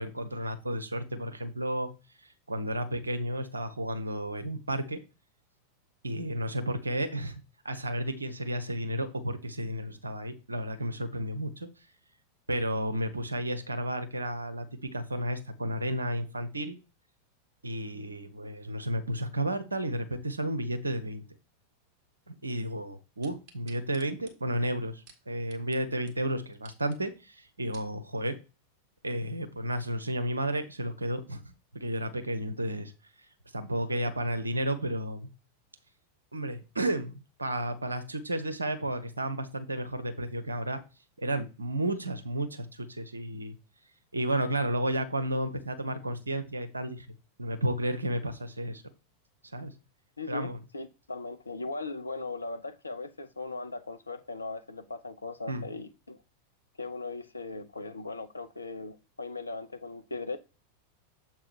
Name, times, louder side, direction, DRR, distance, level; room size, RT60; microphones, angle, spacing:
voice 1, 0.0-1.9 2.2-5.0 6.0-11.7 12.5-16.8 17.6-21.2 22.3-28.4 29.0-32.9 33.5-35.3 36.3-40.8 41.2-43.6 44.1-47.1 47.4-48.8 49.5-49.7 50.3-50.6 55.5-55.7, right 1 dB, 80° right, 1.0 m, -32 dB
sound 1, 23.2-25.8 26.1-26.2 26.5-27.0 27.5-27.9 28.5-28.6, right 4 dB, 40° right, 2.0 m, -55 dB
voice 2, 50.2-50.5 50.7-56.2 56.8-60.4, left 3 dB, 80° left, 0.7 m, -38 dB
7.5 x 3.7 x 4.6 m
figure-of-eight pair, 90°, 0 cm